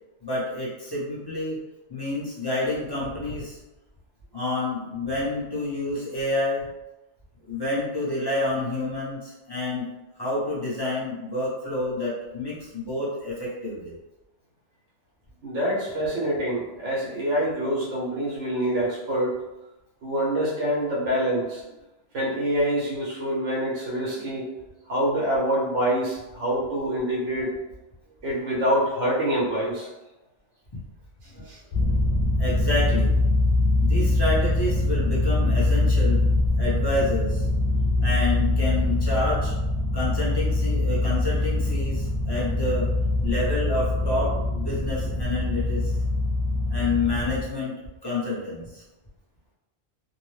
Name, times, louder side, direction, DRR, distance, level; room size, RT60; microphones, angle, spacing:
voice 1, 0.2-1.6 1.9-3.6 4.3-6.6 7.4-9.9 10.2-14.0 32.4-33.1 33.8-36.3 36.6-37.4 38.0-39.5 39.9-42.9 43.2-45.9 46.7-47.7 48.0-48.8, left 2 dB, 25° left, -8 dB, 0.7 m, -28 dB
voice 2, 15.4-19.4 20.0-21.6 22.1-24.5 24.9-27.5 28.2-29.9 31.3-31.6, equal, 85° right, -5 dB, 1.1 m, -26 dB
sound 1, 31.7-47.4, left 2 dB, 75° left, 0.3 m, -23 dB
2.8 x 2.0 x 3.1 m, 1.0 s
omnidirectional pair, 1.2 m